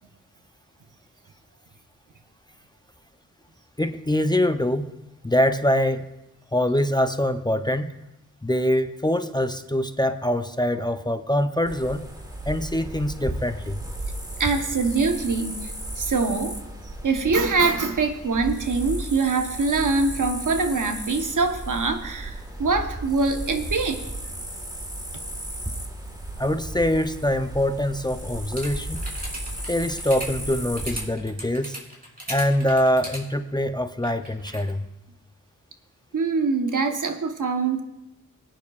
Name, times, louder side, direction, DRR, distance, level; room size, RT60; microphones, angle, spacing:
voice 1, 3.8-4.9 5.2-6.1 6.5-7.9 8.4-12.1 12.5-13.8 26.4-29.0 29.7-31.8 32.3-34.8, left 1 dB, 15° left, 9 dB, 0.6 m, -24 dB
sound 1, 11.6-31.1, right 1 dB, 10° right, 1.6 m, -34 dB
voice 2, 14.4-16.6 17.0-24.0 36.1-37.8, right 4 dB, 70° right, 6 dB, 1.1 m, -24 dB
sound 2, 28.6-33.2 34.0-34.7, right 1 dB, 25° right, 3.6 m, -36 dB
21.5 x 9.6 x 2.4 m, 0.93 s
wide cardioid pair, 65°, 32 cm